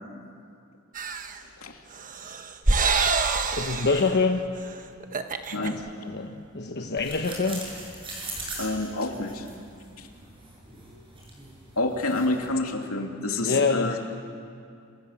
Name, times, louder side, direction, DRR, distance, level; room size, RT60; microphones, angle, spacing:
sound 1, 1.0-1.4 2.0-4.2 4.6-4.7 5.0-5.7, right 4 dB, 40° right, 1.3 m, -26 dB
voice 1, 3.5-4.4 5.5-7.6 13.4-13.9, left 4 dB, 50° left, 3 dB, 1.2 m, -26 dB
sound 2, 7.0-12.5, right 2 dB, 25° right, 7.8 m, -41 dB
voice 2, 8.6-9.4 10.0-10.1 11.8-14.0, left 2 dB, 80° left, 2 dB, 3.0 m, -28 dB
27.5 x 27.5 x 7.5 m, 2.4 s
head